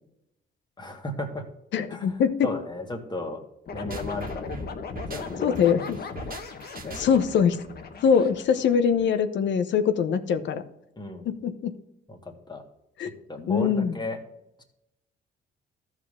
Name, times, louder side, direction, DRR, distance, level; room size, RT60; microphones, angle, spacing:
voice 1, 0.8-1.5 1.9-3.4 3.7-4.7 5.0-5.8 6.2-6.3 6.8-7.1 11.0-11.3 12.1-12.6 13.3-14.2 14.6-14.7, left 2 dB, 20° left, 3 dB, 1.9 m, -35 dB
voice 2, 1.7-2.5 5.4-6.0 7.0-7.6 8.0-10.6 11.2-11.7 13.0-13.1 13.5-13.9, left 7 dB, 70° left, 10 dB, 0.9 m, -23 dB
sound 1, 3.7-9.2, left 5 dB, 50° left, 1.3 m, -38 dB
sound 2, 3.9-7.4, right 3 dB, 45° right, 1.7 m, -41 dB
14.5 x 4.9 x 3.6 m, 0.86 s
cardioid pair, 90°, 20 cm